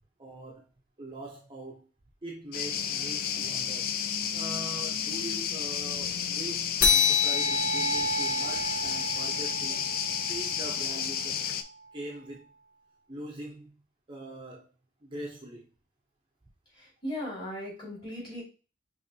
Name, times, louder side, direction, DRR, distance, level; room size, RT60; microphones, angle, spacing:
voice 1, 0.2-0.7 1.0-1.9 2.2-4.0 4.3-9.9 10.3-11.5 11.9-12.5 13.1-13.8 14.1-14.7 15.0-15.7, right 1 dB, 25° right, -1 dB, 0.7 m, -42 dB
sound 1, 2.5-11.6, left 8 dB, 50° left, 0.4 m, -32 dB
sound 2, 6.8-11.7, left 4 dB, 85° left, 0.9 m, -29 dB
voice 2, 16.7-18.4, left 1 dB, 25° left, -6 dB, 2.2 m, -37 dB
5.2 x 3.1 x 2.7 m, 0.35 s
head